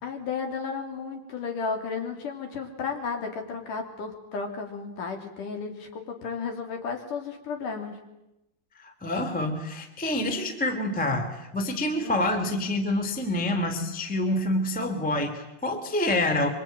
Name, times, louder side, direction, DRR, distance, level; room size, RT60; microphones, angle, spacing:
voice 1, 0.0-8.0 12.0-12.2, left 5 dB, 45° left, 4 dB, 4.2 m, -33 dB
voice 2, 8.8-16.5, left 1 dB, 5° left, 5 dB, 1.3 m, -27 dB
25.0 x 24.5 x 9.2 m, 0.91 s
omnidirectional pair, 5.5 m